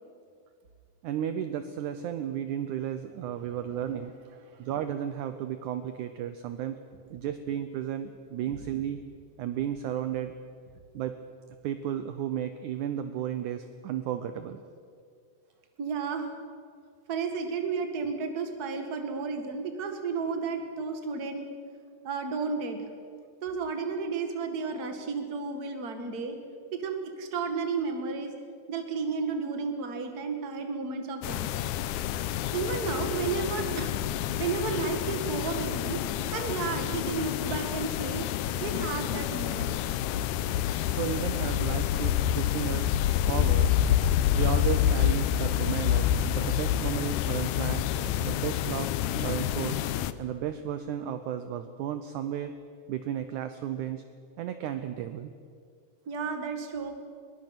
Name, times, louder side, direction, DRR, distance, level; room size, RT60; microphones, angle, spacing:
voice 1, 1.0-4.1 4.6-6.8 7.1-9.0 9.4-10.3 10.9-11.2 11.6-14.6 18.0-18.1 19.4-19.5 22.4-22.5 40.9-42.9 43.3-43.7 44.4-47.9 48.2-49.8 50.2-52.5 52.9-54.0 54.4-55.3, right 10 dB, 75° right, 10 dB, 1.9 m, -33 dB
voice 2, 15.8-16.3 17.1-21.5 22.0-22.8 23.4-26.4 26.7-28.3 28.7-31.5 32.5-33.9 34.4-36.0 36.3-38.3 38.6-39.8 56.1-56.9, right 4 dB, 35° right, 5 dB, 1.7 m, -32 dB
sound 1, 31.2-50.1, left 11 dB, 80° left, 1.9 m, -28 dB
22.0 x 21.5 x 6.0 m, 2.2 s
omnidirectional pair, 4.2 m